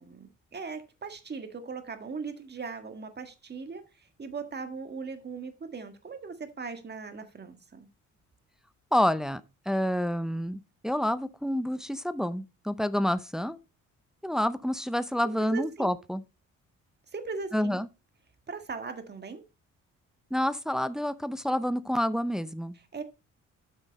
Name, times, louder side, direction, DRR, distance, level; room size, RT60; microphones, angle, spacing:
voice 1, 0.0-7.9 15.2-16.0 17.1-17.8 18.5-19.4 22.7-23.0, right 5 dB, 35° right, 1.7 m, -39 dB
voice 2, 8.9-9.4 9.7-13.6 14.2-16.2 17.5-17.9 20.3-22.8, equal, ahead, 0.6 m, -28 dB
9.0 x 6.2 x 4.1 m
cardioid pair, 90°, 30 cm